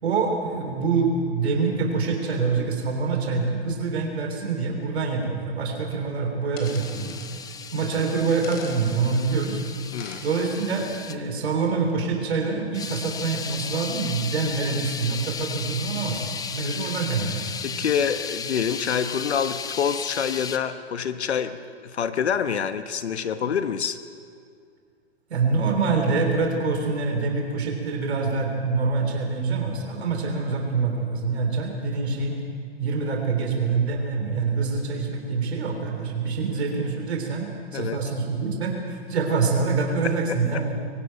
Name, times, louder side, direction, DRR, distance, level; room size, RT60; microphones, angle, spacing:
voice 1, 0.0-7.2 7.7-9.6 10.2-17.6 25.3-32.4 32.8-40.8, right 4 dB, 65° right, 2 dB, 3.6 m, -25 dB
sound 1, 6.6-7.3 8.4-8.8 10.0-10.6, left 5 dB, 30° left, 4.2 m, -43 dB
sound 2, 6.6-11.2 12.7-20.6, left 6 dB, 10° left, 0.8 m, -35 dB
voice 2, 9.9-10.2 17.6-24.0 37.7-38.0 40.3-40.8, left 7 dB, 70° left, 10 dB, 1.2 m, -27 dB
23.0 x 13.0 x 9.1 m, 2.2 s
figure-of-eight pair, 110°, 34 cm